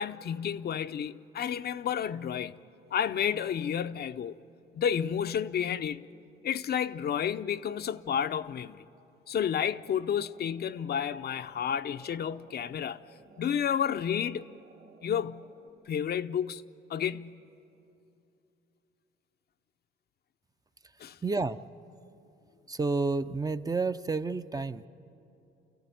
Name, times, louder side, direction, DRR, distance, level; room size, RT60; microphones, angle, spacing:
voice 1, 0.0-2.5 2.9-4.4 4.7-6.1 6.4-8.8 9.3-13.0 13.4-14.5 15.0-15.5 15.9-16.6 16.9-17.4 21.0-21.2, left 8 dB, 55° left, 0.6 m, -31 dB
sound 1, 10.3-15.7, right 5 dB, 70° right, 3.3 m, -58 dB
voice 2, 21.2-21.6 22.7-24.9, right 3 dB, 20° right, 0.5 m, -30 dB
29.0 x 14.5 x 9.3 m
cardioid pair, 90°, 20 cm